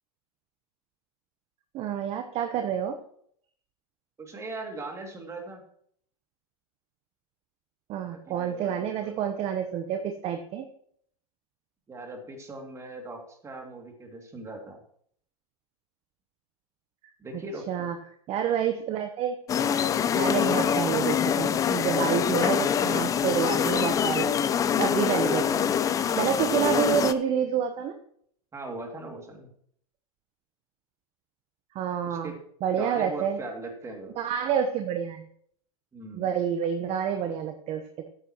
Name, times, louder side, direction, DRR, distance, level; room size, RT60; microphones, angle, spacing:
voice 1, 1.7-3.0 7.9-10.7 17.7-18.0 18.3-19.3 20.1-25.7 26.2-27.9 31.7-32.3 32.6-33.4 34.2-35.2 36.1-38.1, right 8 dB, 30° right, 7 dB, 1.0 m, -28 dB
voice 2, 4.2-5.6 8.0-9.1 11.9-14.8 17.2-17.9 28.5-29.5 32.0-32.3 32.8-34.1 35.9-36.3, right 2 dB, 15° right, 2 dB, 2.5 m, -40 dB
sound 1, 19.5-27.1, left 8 dB, 15° left, 0.5 m, -25 dB
13.0 x 9.8 x 3.0 m, 0.65 s
hypercardioid pair, 115°, 20 cm